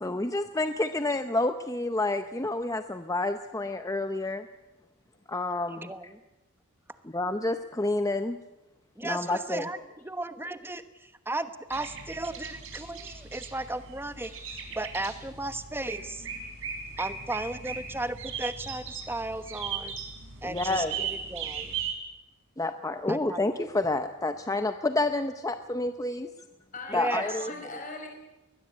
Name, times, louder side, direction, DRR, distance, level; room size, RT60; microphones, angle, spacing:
voice 1, 0.0-4.5 5.3-5.9 7.1-8.4 9.0-9.6 20.4-20.9 22.6-26.3 26.9-27.4, left 2 dB, 15° left, 8 dB, 0.7 m, -29 dB
voice 2, 5.7-6.2 6.9-7.0 9.0-16.3 17.0-20.0 20.4-21.8 23.1-23.7 26.9-27.2, right 2 dB, 10° right, 10 dB, 1.1 m, -35 dB
sound 1, 11.7-21.9, right 6 dB, 60° right, 4.9 m, -38 dB
voice 3, 26.7-28.1, left 3 dB, 35° left, 2 dB, 5.5 m, -39 dB
21.0 x 21.0 x 8.5 m, 1.0 s
head